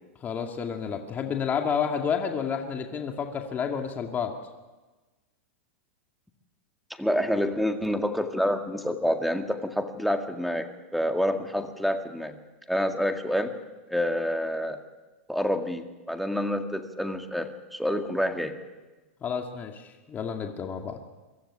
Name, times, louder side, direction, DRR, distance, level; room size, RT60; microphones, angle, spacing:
voice 1, 0.2-4.3 19.2-21.0, left 7 dB, 25° left, 4 dB, 2.3 m, -30 dB
voice 2, 7.0-10.7 10.9-12.4 12.7-13.5 13.9-14.8 15.3-18.6, equal, ahead, 5 dB, 2.0 m, -28 dB
23.5 x 14.5 x 10.0 m, 1.2 s
hypercardioid pair, 125°, 7 cm